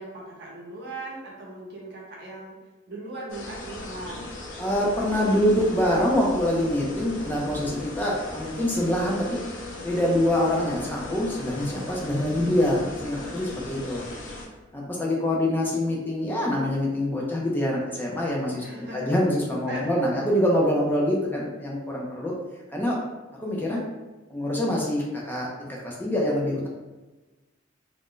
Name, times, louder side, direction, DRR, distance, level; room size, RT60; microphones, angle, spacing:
voice 1, 0.0-2.6 2.9-4.3 18.6-19.1 19.7-19.9, right 2 dB, 55° right, -3 dB, 0.8 m, -38 dB
sound 1, 3.3-14.5, left 2 dB, 70° left, 0.6 m, -38 dB
voice 2, 4.6-9.4 9.8-14.0 14.7-22.3 22.7-23.0 23.4-23.8 24.3-26.7, left 1 dB, 10° left, -4 dB, 0.4 m, -25 dB
2.4 x 2.1 x 3.7 m, 1.2 s
head